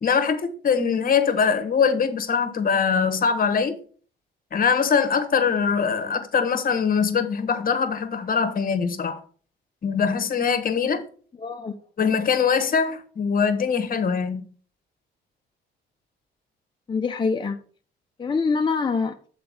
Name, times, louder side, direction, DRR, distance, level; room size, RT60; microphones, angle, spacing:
voice 1, 0.0-3.8 4.5-9.2 9.8-11.0 12.0-14.4, left 6 dB, 45° left, 1.2 m, -22 dB
voice 2, 11.4-11.8 16.9-17.6 18.2-19.1, left 4 dB, 25° left, 0.6 m, -24 dB
6.8 x 4.4 x 5.5 m
cardioid pair, 90°, 20 cm